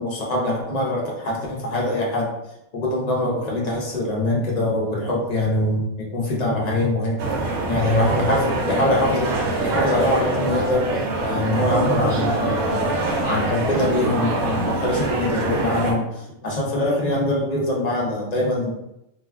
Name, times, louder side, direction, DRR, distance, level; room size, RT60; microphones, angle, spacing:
voice 1, 0.0-2.3 2.7-7.2 7.7-9.3 9.6-18.8, left 1 dB, 45° left, -3 dB, 0.5 m, -23 dB
sound 1, 7.2-15.9, right 2 dB, 75° right, 1.0 m, -24 dB
2.5 x 2.3 x 3.4 m, 0.85 s
omnidirectional pair, 1.5 m